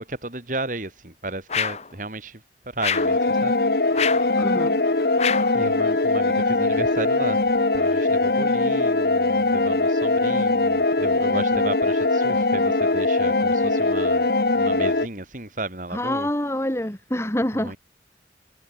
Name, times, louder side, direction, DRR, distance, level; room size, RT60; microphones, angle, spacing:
voice 1, 0.0-2.4 2.7-3.5 3.9-4.1 5.5-7.4 7.7-16.3 17.5-17.8, right 2 dB, 45° right, 4.0 m, -34 dB
sound 1, 1.5-1.9 2.8-3.2 3.9-4.3 5.2-5.6, left 7 dB, 35° left, 1.1 m, -26 dB
sound 2, 2.9-15.1, left 2 dB, 60° left, 1.2 m, -21 dB
voice 2, 4.4-4.8 15.9-17.8, left 1 dB, 15° left, 2.0 m, -26 dB
head